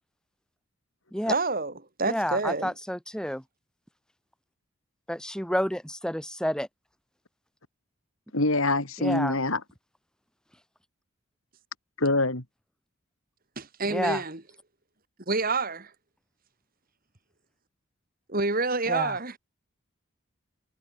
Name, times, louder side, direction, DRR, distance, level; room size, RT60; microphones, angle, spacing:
voice 1, 1.3-2.7 13.6-14.4 15.3-15.9 18.3-19.4, right 3 dB, 40° right, 2.6 m, -28 dB
voice 2, 2.1-3.4 5.1-6.7 9.0-9.4 13.9-14.2 18.9-19.1, equal, 5° left, 3.5 m, -29 dB
voice 3, 8.3-9.6 12.0-12.4, left 2 dB, 70° left, 3.8 m, -25 dB
head